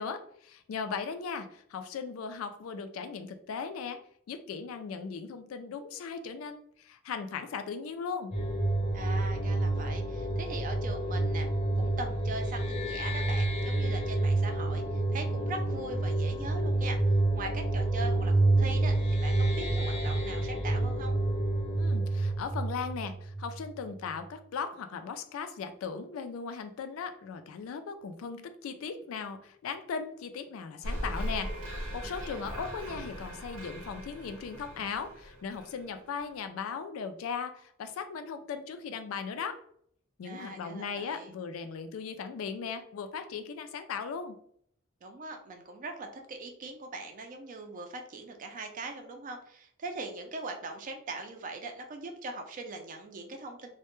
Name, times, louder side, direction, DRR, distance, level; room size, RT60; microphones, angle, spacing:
voice 1, 0.0-4.0 4.3-8.3 21.8-39.6 40.2-44.4, left 5 dB, 80° left, 9 dB, 0.3 m, -38 dB
sound 1, 8.3-23.8, right 2 dB, 30° left, 0.6 m, -28 dB
voice 2, 8.9-11.5 11.7-17.0 17.3-21.2 32.0-32.5 40.2-41.3 45.0-53.7, right 2 dB, 40° right, 4 dB, 0.4 m, -41 dB
sound 2, 30.8-36.3, equal, 85° right, 0.7 m, -39 dB
2.1 x 2.1 x 2.9 m, 0.65 s
head